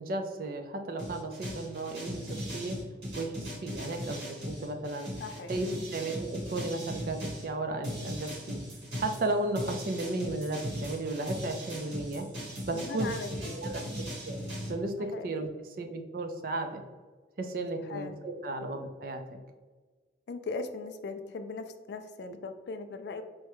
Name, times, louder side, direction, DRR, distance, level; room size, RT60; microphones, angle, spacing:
voice 1, 0.0-2.8 3.1-5.1 5.5-8.6 9.0-12.3 12.7-13.1 13.5-13.8 14.3-14.4 14.7-16.8 17.4-19.4, right 2 dB, 50° right, 6 dB, 0.4 m, -34 dB
sound 1, 1.0-7.5 7.8-14.7, equal, 85° right, 1.3 m, -38 dB
voice 2, 5.2-5.5 12.7-13.6 15.1-15.3 17.9-18.1 20.3-23.2, left 4 dB, 65° left, 9 dB, 0.3 m, -39 dB
4.6 x 2.1 x 3.0 m, 1.4 s
head